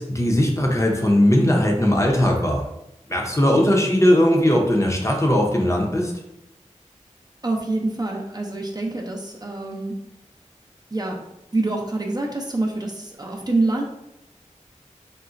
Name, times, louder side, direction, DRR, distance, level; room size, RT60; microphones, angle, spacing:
voice 1, 0.0-2.6 3.1-6.1, left 1 dB, 25° left, 0 dB, 0.6 m, -19 dB
voice 2, 7.4-9.9 10.9-11.2 11.5-13.8, right 2 dB, 30° right, 0 dB, 0.5 m, -26 dB
3.8 x 2.0 x 2.4 m, 0.85 s
wide cardioid pair, 40°, 13 cm